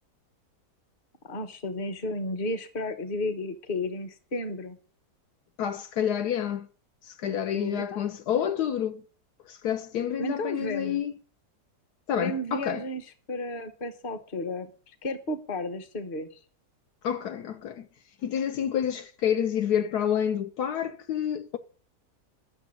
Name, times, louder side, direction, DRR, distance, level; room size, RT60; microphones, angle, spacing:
voice 1, 1.2-4.8 7.2-8.0 10.2-11.0 12.1-16.4, left 1 dB, 35° left, 1.2 m, -33 dB
voice 2, 5.6-6.7 7.0-9.0 9.5-11.1 12.1-12.8 17.0-17.9 18.2-21.6, left 9 dB, 75° left, 1.2 m, -28 dB
10.5 x 6.4 x 7.5 m
omnidirectional pair, 1.8 m